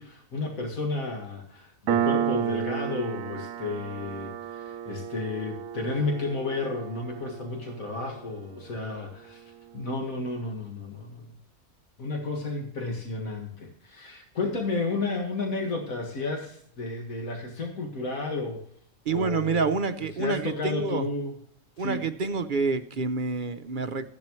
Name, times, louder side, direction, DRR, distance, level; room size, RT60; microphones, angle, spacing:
voice 1, 0.0-9.4 9.7-11.3 12.0-18.6 19.1-19.7 20.0-21.3 21.8-22.0, left 3 dB, 85° left, 2.2 m, -32 dB
Piano, 1.9-9.0, right 10 dB, 80° right, 1.0 m, -32 dB
voice 2, 19.1-21.0 21.8-24.1, right 4 dB, 45° right, 0.7 m, -28 dB
15.0 x 11.0 x 3.1 m
omnidirectional pair, 1.4 m